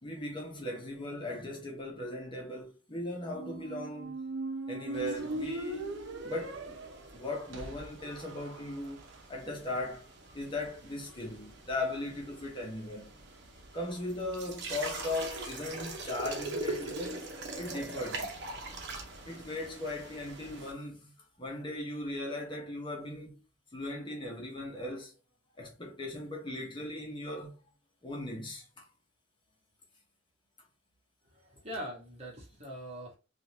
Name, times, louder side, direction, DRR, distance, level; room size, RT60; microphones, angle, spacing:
voice 1, 0.0-4.2 4.7-6.0 6.2-6.8 7.1-9.0 9.3-10.1 10.3-13.1 13.7-17.3 17.6-18.3 19.2-21.1 21.4-23.4 23.7-25.1 25.6-27.6 28.0-28.9, left 1 dB, 25° left, 0.9 m, -38 dB
Squeak, 3.2-9.2, right 2 dB, 80° right, 0.7 m, -40 dB
sound 1, 4.9-20.7, right 2 dB, 60° right, 0.9 m, -43 dB
voice 2, 31.3-33.2, equal, 35° right, 1.4 m, -42 dB
3.8 x 2.5 x 2.9 m
head